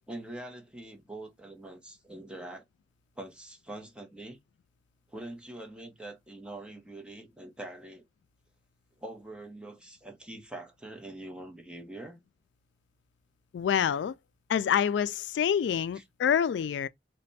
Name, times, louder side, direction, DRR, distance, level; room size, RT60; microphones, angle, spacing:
voice 1, 0.1-2.6 3.2-4.4 5.1-8.0 9.0-12.2 15.9-16.0, right 1 dB, 5° right, 0.8 m, -44 dB
voice 2, 13.5-14.1 14.5-16.9, left 8 dB, 85° left, 0.3 m, -27 dB
3.3 x 2.2 x 4.0 m
head